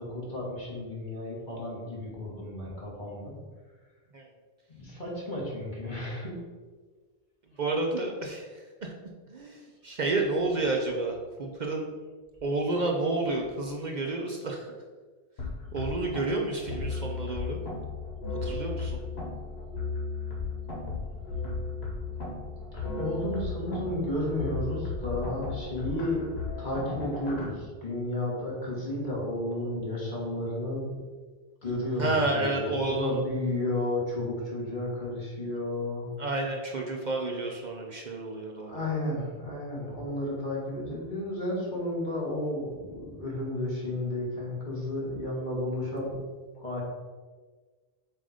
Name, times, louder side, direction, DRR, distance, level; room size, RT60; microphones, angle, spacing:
voice 1, 0.0-3.4 4.7-6.4 22.7-30.9 31.6-36.1 38.6-46.2 46.5-46.8, left 1 dB, 50° left, -4 dB, 1.8 m, -32 dB
voice 2, 7.6-8.5 8.8-8.9 9.3-11.9 12.4-14.7 15.7-17.6 18.3-19.0 32.0-33.2 36.2-38.8, right 2 dB, 50° right, 1 dB, 0.7 m, -30 dB
sound 1, 15.4-27.5, left 3 dB, 90° left, 1.5 m, -35 dB
7.5 x 2.6 x 4.9 m, 1.4 s
omnidirectional pair, 1.0 m